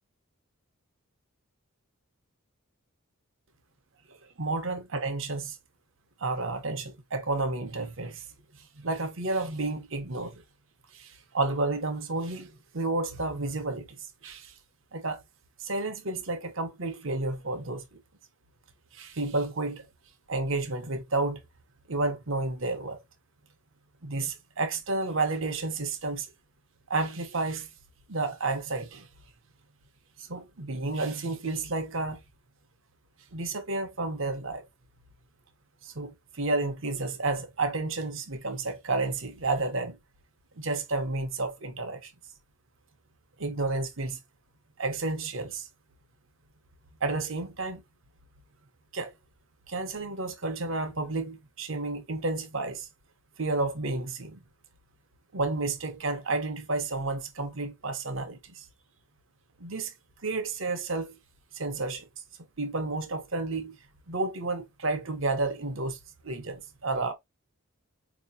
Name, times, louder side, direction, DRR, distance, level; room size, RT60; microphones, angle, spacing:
voice 1, 4.4-5.6 6.2-8.2 8.6-10.4 10.9-14.5 14.9-15.2 15.6-17.8 18.9-19.9 20.3-21.4 21.9-23.0 24.0-26.3 26.9-27.7 28.1-29.1 30.2-32.2 33.3-34.7 35.8-40.0 40.6-42.1 43.4-44.2 44.8-45.7 47.0-47.8 48.9-49.1 49.7-52.9 53.4-54.4 55.3-58.7 59.6-59.9 60.2-61.1 61.5-62.1 62.6-63.8 64.1-66.0 66.2-67.1, right 3 dB, 65° right, 0.9 m, -31 dB
4.7 x 3.0 x 2.6 m
head